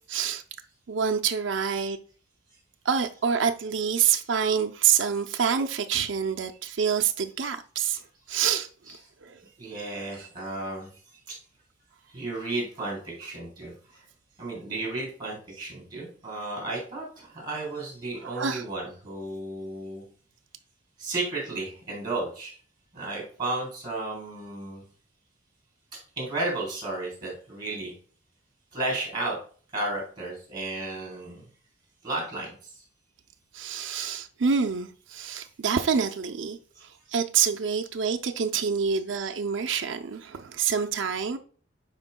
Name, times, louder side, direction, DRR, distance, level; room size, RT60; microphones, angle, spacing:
voice 1, 0.1-0.4 0.9-2.0 2.8-8.0 8.3-8.7 9.2-9.4 18.2-18.6 33.5-41.4, right 7 dB, 70° right, 0.5 m, -27 dB
voice 2, 8.6-9.1 9.6-10.9 11.3-11.4 12.1-14.0 14.4-20.0 21.0-22.5 22.9-24.8 26.2-27.9 28.7-29.4 29.7-31.5 32.0-32.5 34.6-34.7, right 2 dB, 20° right, 3.7 m, -33 dB
11.5 x 4.4 x 2.2 m
head